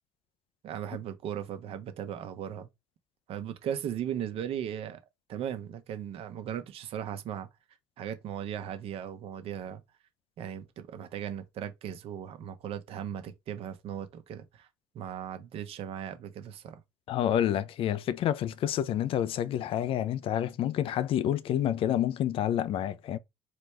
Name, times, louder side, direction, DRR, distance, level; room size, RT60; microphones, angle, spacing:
voice 1, 0.6-2.7 3.3-5.0 5.3-7.5 8.0-9.8 10.4-14.7 14.9-16.8, right 9 dB, 55° right, 1.0 m, -37 dB
voice 2, 17.1-23.2, left 11 dB, 50° left, 0.5 m, -28 dB
4.2 x 3.1 x 3.3 m
hypercardioid pair, 55°, 12 cm